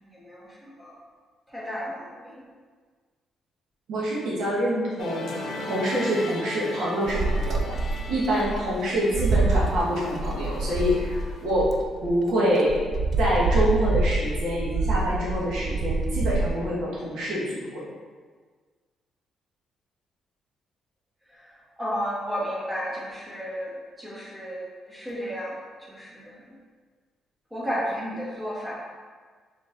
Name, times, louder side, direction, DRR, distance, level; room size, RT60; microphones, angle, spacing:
voice 1, 0.0-0.9 1.5-2.4 21.3-21.5 21.8-25.6 25.9-26.5 27.5-28.7, equal, 10° right, -6 dB, 1.4 m, -33 dB
voice 2, 3.9-5.3 5.7-7.8 8.1-11.7 12.0-12.8 13.2-17.8, equal, 80° right, -6 dB, 1.3 m, -26 dB
Musical instrument, 5.0-11.5, left 2 dB, 75° left, 0.7 m, -38 dB
sound 1, 7.1-12.2 12.7-16.5, right 3 dB, 55° right, 0.4 m, -26 dB
4.4 x 4.1 x 2.5 m, 1.5 s
cardioid pair, 90°, 0 cm